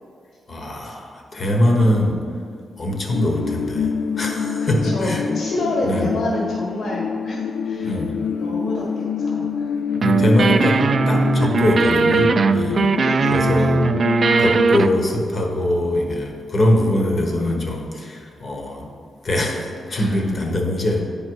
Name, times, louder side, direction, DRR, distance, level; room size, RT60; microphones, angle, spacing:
voice 1, 0.5-2.2 2.8-5.3 5.8-6.1 7.8-8.2 10.0-10.8 11.1-12.9 13.3-13.8 14.4-18.9 19.2-21.0, left 1 dB, 40° left, 1 dB, 1.2 m, -22 dB
sound 1, 3.1-15.0, left 6 dB, 90° left, 0.3 m, -26 dB
voice 2, 4.4-8.0 8.4-9.7 12.7-13.8 19.9-20.2, left 1 dB, 65° left, -3 dB, 1.6 m, -28 dB
sound 2, 10.0-14.9, right 4 dB, 45° right, 0.3 m, -19 dB
9.6 x 5.2 x 4.7 m, 2.2 s
wide cardioid pair, 130°, 0 cm